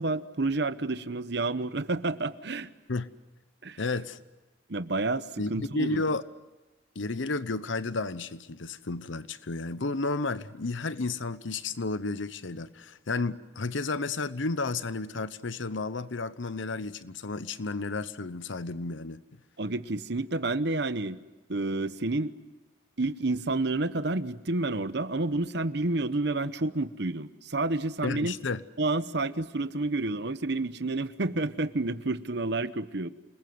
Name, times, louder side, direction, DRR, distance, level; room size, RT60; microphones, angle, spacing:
voice 1, 0.0-2.7 3.6-3.8 4.7-6.0 19.6-21.2 21.5-22.3 23.0-28.3 28.8-33.1, right 2 dB, 60° right, 1.0 m, -29 dB
voice 2, 3.8-4.2 5.4-6.2 6.9-19.2 28.0-28.6, left 3 dB, 80° left, 0.9 m, -32 dB
29.0 x 20.5 x 9.5 m
head